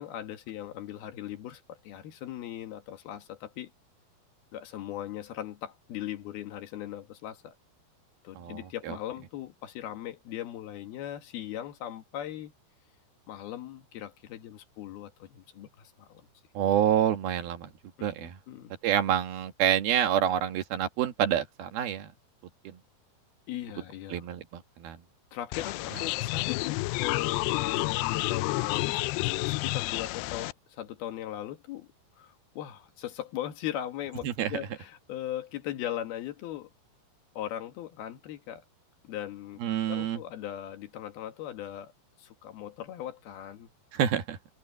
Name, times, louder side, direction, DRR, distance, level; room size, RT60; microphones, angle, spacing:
voice 1, 0.0-3.7 4.5-7.5 8.2-12.5 13.3-16.3 18.0-18.8 23.5-24.3 25.3-29.1 29.4-31.9 32.2-36.7 37.3-38.6 39.0-39.6 39.9-41.9 42.2-43.7, left 12 dB, 70° left, 3.4 m, -39 dB
voice 2, 16.5-17.7 18.0-18.4 18.8-22.1 22.6-22.8 24.1-25.0 34.2-34.5 39.6-40.2 43.9-44.4, right 10 dB, 70° right, 3.3 m, -27 dB
sound 1, 25.5-30.5, left 21 dB, 85° left, 2.6 m, -30 dB
omnidirectional pair, 4.7 m